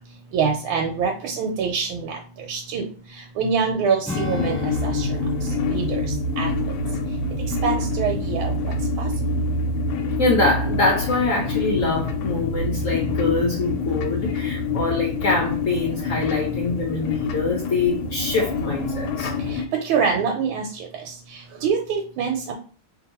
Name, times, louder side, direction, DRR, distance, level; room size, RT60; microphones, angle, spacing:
voice 1, 0.3-2.2 2.5-2.9 3.4-5.1 5.7-6.0 6.4-6.5 7.6-9.1 19.8-20.9 21.6-22.5, right 6 dB, 85° right, 2 dB, 1.5 m, -24 dB
sound 1, 4.1-19.7, left 3 dB, 90° left, 1.4 m, -26 dB
Strum, 4.1-8.8 9.1-9.4, left 5 dB, 5° left, 1.1 m, -35 dB
voice 2, 10.2-19.3, left 3 dB, 65° left, -1 dB, 0.8 m, -24 dB
2.9 x 2.8 x 4.0 m, 0.39 s
omnidirectional pair, 2.2 m